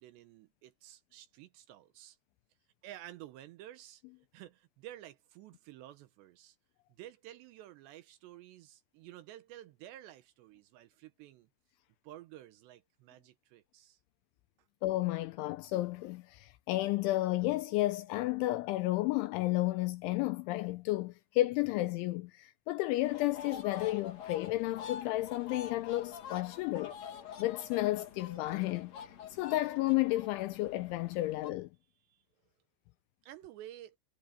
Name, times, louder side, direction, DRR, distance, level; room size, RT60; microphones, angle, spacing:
voice 1, 0.0-2.2 2.8-4.0 4.3-6.6 7.0-11.5 12.0-14.0 32.1-32.2 33.2-34.0, right 13 dB, 80° right, 2.6 m, -51 dB
voice 2, 14.8-26.9 27.4-28.9 29.3-31.7, left 17 dB, 85° left, 2.8 m, -32 dB
sound 1, 23.0-31.5, left 7 dB, 45° left, 2.4 m, -47 dB
omnidirectional pair, 6.0 m